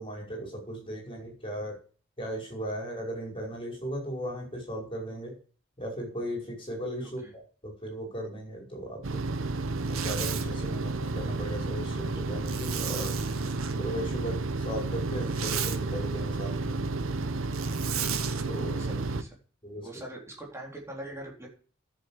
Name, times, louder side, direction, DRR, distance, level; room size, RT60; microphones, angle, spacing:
voice 1, 0.0-1.8 2.2-5.4 5.8-9.2 9.9-13.2 13.8-16.8 18.4-18.7 19.6-19.9, equal, 25° left, 0 dB, 5.5 m, -37 dB
sound 1, 9.0-19.2, right 3 dB, 65° right, 0.9 m, -31 dB
Zipper (clothing), 9.8-10.5 12.4-13.8 15.1-15.8 17.5-18.4, right 9 dB, 85° right, 1.7 m, -35 dB
voice 2, 18.5-19.4 19.8-21.5, right 1 dB, 15° right, -1 dB, 4.0 m, -42 dB
11.0 x 7.2 x 7.4 m, 0.40 s
head